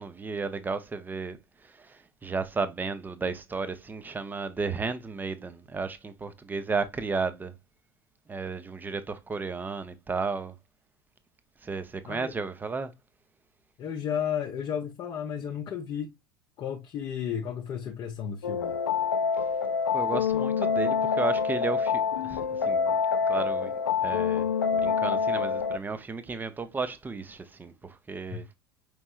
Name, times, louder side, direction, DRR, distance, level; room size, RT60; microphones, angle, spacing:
voice 1, 0.0-7.5 8.3-10.6 11.6-12.9 19.9-23.0 23.3-23.7 24.0-28.5, right 4 dB, 15° right, 0.6 m, -33 dB
voice 2, 13.8-16.1 16.6-18.8 28.3-28.4, left 8 dB, 40° left, 0.7 m, -33 dB
sound 1, 18.4-25.8, left 6 dB, 75° left, 0.4 m, -26 dB
5.2 x 3.2 x 2.4 m
figure-of-eight pair, 70°, 12 cm